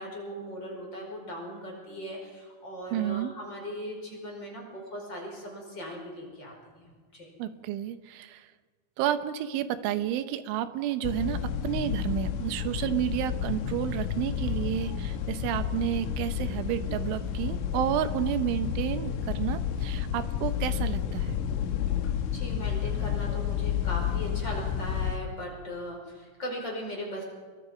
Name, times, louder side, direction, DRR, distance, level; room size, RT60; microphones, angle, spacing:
voice 1, 0.0-7.4 22.3-27.2, equal, 25° left, 0 dB, 5.4 m, -39 dB
voice 2, 2.9-3.3 7.4-8.5 9.0-21.4, right 11 dB, 80° right, 11 dB, 3.4 m, -31 dB
sound 1, 11.0-25.2, left 8 dB, 80° left, 3.6 m, -31 dB
29.5 x 22.0 x 5.2 m, 1.5 s
omnidirectional pair, 5.6 m